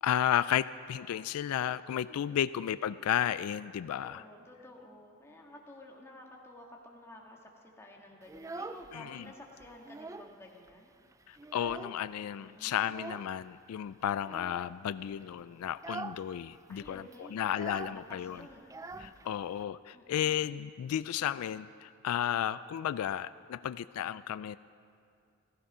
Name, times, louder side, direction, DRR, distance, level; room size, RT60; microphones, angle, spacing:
voice 1, 0.0-4.2 8.9-9.2 11.3-18.4 19.0-24.6, left 10 dB, 90° left, 17 dB, 0.3 m, -33 dB
voice 2, 2.1-2.6 3.9-10.9 12.4-12.8 16.7-17.4 17.8-18.7 19.0-19.1 19.9-20.4, left 1 dB, 10° left, -1 dB, 1.8 m, -52 dB
Child speech kid speaking, 8.2-9.3 9.6-10.4 10.7-10.8 11.1-12.2 12.8-13.3 14.2-14.7 15.1-15.3 15.7-16.3 16.5-16.6 16.8-19.6, right 3 dB, 15° right, 0.3 m, -44 dB
15.5 x 15.0 x 5.5 m, 2.4 s
head